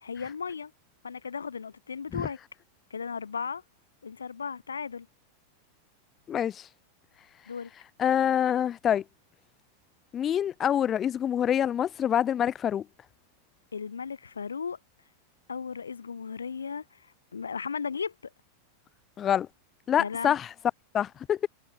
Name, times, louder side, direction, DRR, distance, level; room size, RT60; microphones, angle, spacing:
voice 1, 0.0-0.7 1.0-2.4 2.9-3.6 4.0-5.1 7.5-7.7 13.7-14.8 15.5-17.1 17.3-18.3 20.0-20.3, left 6 dB, 75° left, 0.7 m, -35 dB
voice 2, 6.3-6.7 8.0-9.0 10.1-12.9 19.2-19.5 19.9-20.5 20.9-21.5, left 9 dB, 25° left, 0.4 m, -26 dB
figure-of-eight pair, 90°, 0 cm